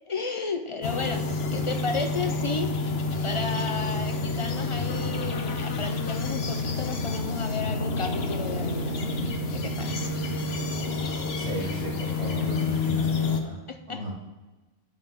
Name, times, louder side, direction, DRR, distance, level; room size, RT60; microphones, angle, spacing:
voice 1, 0.1-1.2 1.5-2.7 3.2-10.1 13.7-14.0, left 4 dB, 40° left, 6 dB, 0.5 m, -33 dB
sound 1, 0.8-13.4, left 3 dB, 55° left, 1.1 m, -29 dB
voice 2, 11.4-13.6 13.9-14.1, right 2 dB, 60° right, -4 dB, 2.3 m, -34 dB
12.0 x 6.8 x 3.7 m, 1.2 s
omnidirectional pair, 1.3 m